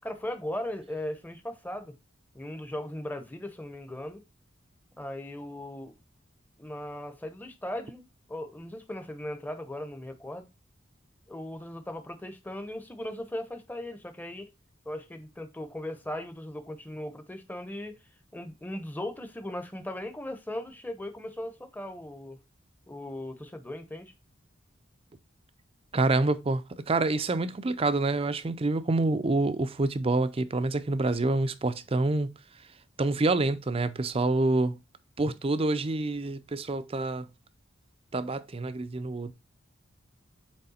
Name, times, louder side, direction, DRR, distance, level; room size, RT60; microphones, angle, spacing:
voice 1, 0.0-2.0 2.3-4.2 5.0-5.9 6.6-10.5 11.3-14.5 14.8-18.0 18.3-22.4 22.9-24.1, left 1 dB, 10° left, 0.8 m, -38 dB
voice 2, 25.9-32.3 33.0-34.8 35.2-37.3 38.1-39.3, right 2 dB, 30° right, 0.5 m, -27 dB
7.8 x 3.3 x 4.2 m
head